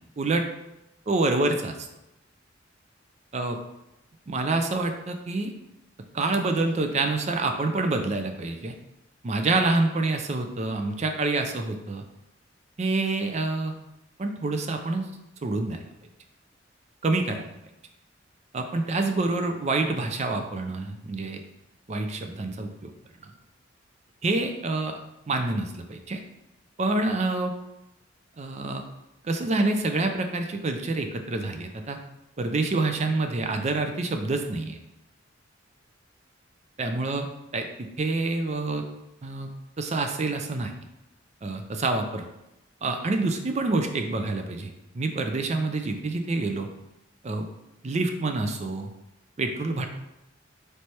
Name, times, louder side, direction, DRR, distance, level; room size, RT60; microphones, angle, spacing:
voice 1, 1.1-1.9 3.3-3.6 4.3-5.5 6.1-8.7 9.2-12.0 12.8-13.7 14.2-15.1 15.4-15.8 17.0-17.4 18.5-21.4 21.9-22.9 24.2-25.0 25.3-26.2 26.8-27.5 28.4-28.8 29.2-32.0 32.4-34.8 36.8-37.3 37.5-38.8 39.2-39.5 39.8-40.7 41.4-42.3 42.8-46.7 47.2-47.5 47.8-48.9 49.4-49.9, right 2 dB, 35° right, 5 dB, 0.4 m, -27 dB
3.2 x 3.2 x 4.3 m, 0.89 s
head